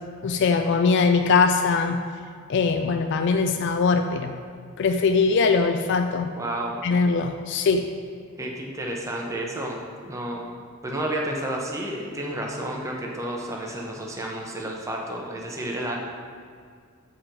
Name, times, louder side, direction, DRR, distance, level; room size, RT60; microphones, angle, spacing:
voice 1, 0.2-2.0 2.5-4.4 4.8-6.3 6.8-7.9, left 4 dB, 55° left, 7 dB, 0.3 m, -21 dB
voice 2, 6.4-6.8 8.4-9.8 10.1-10.5 10.8-16.0, right 1 dB, 15° right, -1 dB, 0.7 m, -31 dB
7.5 x 4.5 x 5.1 m, 2.1 s
head